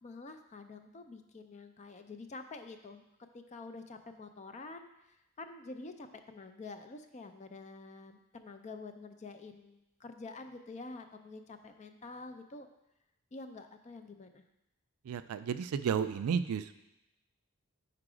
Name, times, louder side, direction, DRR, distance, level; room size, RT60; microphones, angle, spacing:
voice 1, 0.0-3.0 3.3-4.9 5.4-12.7 13.3-14.4, left 3 dB, 30° left, 8 dB, 0.4 m, -47 dB
voice 2, 15.0-16.7, right 7 dB, 75° right, 11 dB, 0.3 m, -32 dB
4.9 x 4.5 x 4.9 m, 0.90 s
head